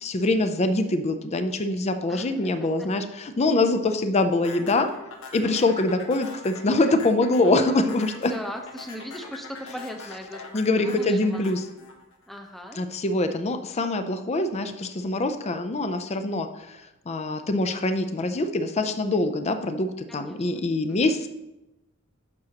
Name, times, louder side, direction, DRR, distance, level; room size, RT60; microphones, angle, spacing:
voice 1, 0.0-4.9 5.3-8.3 10.5-11.6 12.7-21.3, left 2 dB, 30° left, 8 dB, 0.5 m, -24 dB
voice 2, 2.1-2.9 8.3-11.4 12.3-12.8 20.1-21.2, equal, ahead, 3 dB, 0.8 m, -39 dB
sound 1, 4.4-12.8, left 4 dB, 65° left, 1.1 m, -42 dB
10.5 x 6.4 x 2.9 m, 0.96 s
head